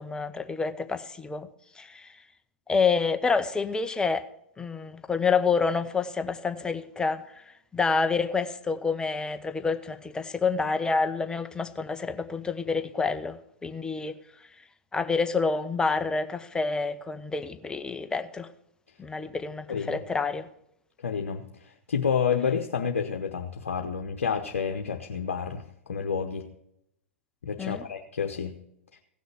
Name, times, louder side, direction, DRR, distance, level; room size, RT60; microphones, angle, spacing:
voice 1, 0.0-1.5 1.8-2.1 2.7-4.3 4.6-7.4 7.7-14.2 14.9-18.5 19.0-20.5 27.6-27.8, left 4 dB, 10° left, 0.8 m, -28 dB
voice 2, 19.7-20.0 21.0-26.5 27.4-28.6, left 6 dB, 70° left, 1.0 m, -29 dB
16.5 x 6.3 x 6.6 m
figure-of-eight pair, 100°, 7 cm